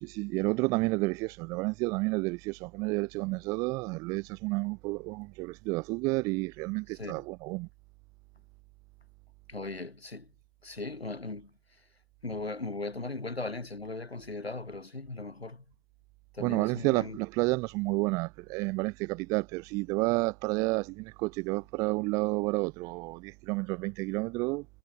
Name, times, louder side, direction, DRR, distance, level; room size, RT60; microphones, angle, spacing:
voice 1, 0.0-7.7 16.4-24.6, right 26 dB, 10° right, 0.9 m, -30 dB
voice 2, 6.9-7.3 9.5-10.3 10.6-11.5 12.2-15.6 16.3-17.2, left 3 dB, 75° left, 3.6 m, -38 dB
figure-of-eight pair, 140°, 31 cm